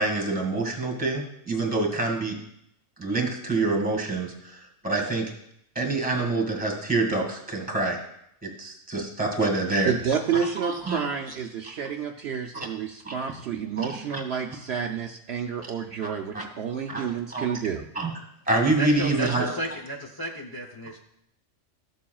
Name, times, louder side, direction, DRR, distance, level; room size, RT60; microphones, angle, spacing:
voice 1, 0.0-2.4 3.0-5.3 5.8-8.0 8.4-9.9 10.6-11.0 12.5-12.7 13.0-13.1 13.8-14.2 16.3-16.4 16.9-17.0 17.3-17.6 18.0-18.1 18.5-19.4, right 3 dB, 5° right, 2 dB, 2.0 m, -26 dB
voice 2, 9.8-17.8, right 7 dB, 65° right, 3 dB, 0.8 m, -30 dB
voice 3, 18.8-21.0, right 1 dB, 20° left, 0 dB, 0.7 m, -33 dB
14.0 x 7.3 x 2.3 m, 0.75 s
omnidirectional pair, 1.3 m